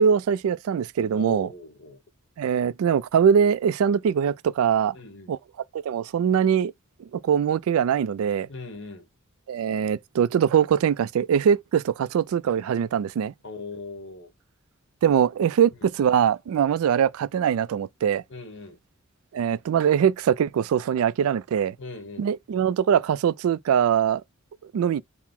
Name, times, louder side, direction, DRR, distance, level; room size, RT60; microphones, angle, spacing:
voice 1, 0.0-1.5 2.4-4.9 5.3-5.4 5.7-6.7 7.2-8.5 9.5-13.3 15.0-15.7 16.0-18.2 19.3-21.7 22.2-24.2 24.7-25.0, right 8 dB, 75° right, 0.3 m, -22 dB
voice 2, 1.1-2.0 4.9-5.4 8.5-9.1 13.4-14.3 15.7-15.8 18.3-18.8 21.8-22.3, left 2 dB, 60° left, 1.1 m, -39 dB
4.6 x 2.0 x 3.6 m
head